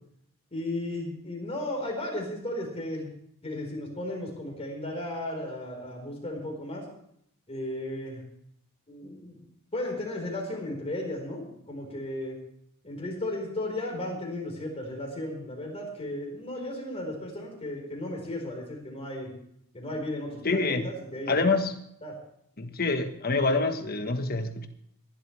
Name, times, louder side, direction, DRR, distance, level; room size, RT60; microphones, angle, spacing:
voice 1, 0.5-3.1 3.4-6.9 7.5-8.2 8.9-9.4 9.7-12.4 12.8-19.3 19.7-21.3 22.0-22.2, left 1 dB, 30° left, 0 dB, 4.4 m, -35 dB
voice 2, 20.4-20.9 21.3-21.7 22.6-24.7, left 3 dB, 45° left, 7 dB, 1.3 m, -26 dB
22.5 x 11.5 x 3.3 m, 0.70 s
head